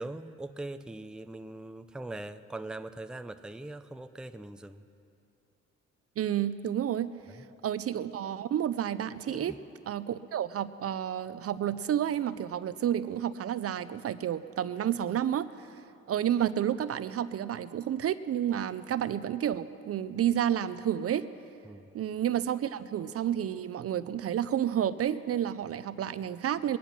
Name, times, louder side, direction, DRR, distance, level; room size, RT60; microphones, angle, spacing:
voice 1, 0.0-4.8 7.3-7.4 9.3-9.6 21.6-21.9, right 2 dB, 5° right, 9 dB, 0.5 m, -41 dB
voice 2, 6.2-7.1 7.6-9.5 9.9-15.7 16.1-21.3 21.9-26.8, right 10 dB, 50° right, 14 dB, 0.5 m, -30 dB
22.5 x 10.0 x 6.0 m, 2.6 s
cardioid pair, 90°, 30 cm